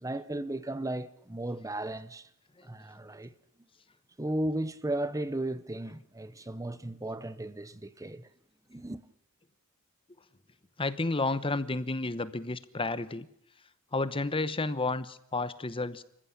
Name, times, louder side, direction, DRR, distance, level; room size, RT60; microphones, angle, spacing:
voice 1, 0.0-2.3 2.6-3.3 4.2-8.3 8.7-9.0, right 1 dB, 15° right, 0.8 m, -35 dB
voice 2, 10.8-13.3 13.9-16.0, left 3 dB, 25° left, 1.0 m, -31 dB
26.5 x 15.0 x 10.0 m
head